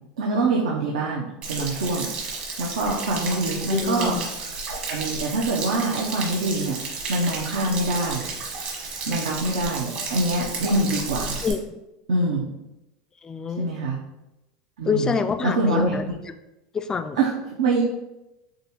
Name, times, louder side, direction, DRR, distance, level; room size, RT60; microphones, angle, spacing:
voice 1, 0.2-2.1 2.6-4.2 4.7-6.8 7.1-8.3 9.1-11.4 12.1-12.4 13.6-14.0 14.8-15.1 15.4-16.0 17.2-17.8, right 2 dB, 90° right, -3 dB, 0.7 m, -24 dB
Stream / Splash splatter / Trickle dribble, 1.4-11.5, right 3 dB, 45° right, 1.2 m, -32 dB
voice 2, 3.6-4.3 11.4-11.6 13.2-13.7 14.8-16.0 16.7-17.2, left 5 dB, 20° left, 9 dB, 0.3 m, -26 dB
6.4 x 2.4 x 3.0 m, 0.97 s
supercardioid pair, 130°, 3 cm